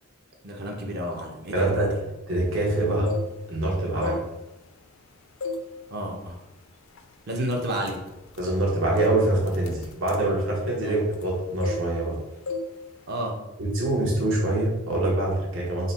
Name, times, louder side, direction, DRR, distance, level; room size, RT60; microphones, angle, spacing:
voice 1, 0.4-1.7 3.9-4.2 5.9-6.4 7.3-8.0 10.8-10.9 13.1-13.4, right 1 dB, 55° right, 1 dB, 0.7 m, -30 dB
voice 2, 1.5-3.1 3.5-4.2 8.4-12.2 13.6-15.9, right 1 dB, 70° right, -3 dB, 1.1 m, -25 dB
sound 1, 2.8-3.6 3.9-5.0 5.4-5.7 6.1-6.4 7.0-7.1 7.5-11.3 11.6-12.2 12.5-12.7 13.0-13.3, left 3 dB, 75° left, 0.4 m, -35 dB
3.9 x 2.2 x 4.1 m, 0.94 s
head